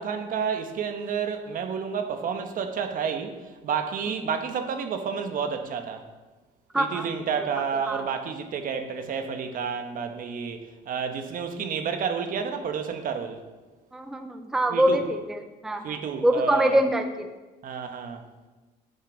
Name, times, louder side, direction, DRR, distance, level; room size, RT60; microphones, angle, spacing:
voice 1, 0.0-3.3 3.6-6.0 6.8-13.4 14.7-15.0 15.8-16.8 17.6-18.2, right 6 dB, 55° right, 7 dB, 1.0 m, -30 dB
voice 2, 6.7-7.1 7.4-7.5 7.9-8.0 13.9-17.3, right 1 dB, 5° right, 7 dB, 0.5 m, -25 dB
9.7 x 6.8 x 4.0 m, 1.2 s
cardioid pair, 110°, 17 cm